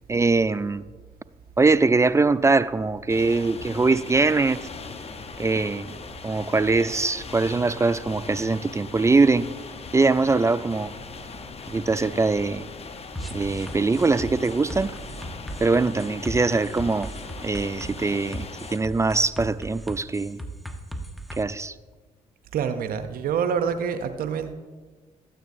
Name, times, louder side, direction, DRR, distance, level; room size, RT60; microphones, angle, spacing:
voice 1, 0.1-0.8 1.6-4.6 5.4-5.9 6.2-9.5 9.9-10.9 11.7-12.6 13.3-14.9 15.6-17.1 17.4-20.4 21.4-21.7, right 3 dB, 20° right, 0.3 m, -22 dB
sound 1, 3.1-18.8, left 4 dB, 40° left, 0.8 m, -39 dB
sound 2, 13.2-21.4, right 1 dB, ahead, 1.0 m, -37 dB
voice 2, 22.5-24.5, right 7 dB, 65° right, 0.6 m, -26 dB
13.5 x 9.0 x 2.6 m
hypercardioid pair, 50°, 16 cm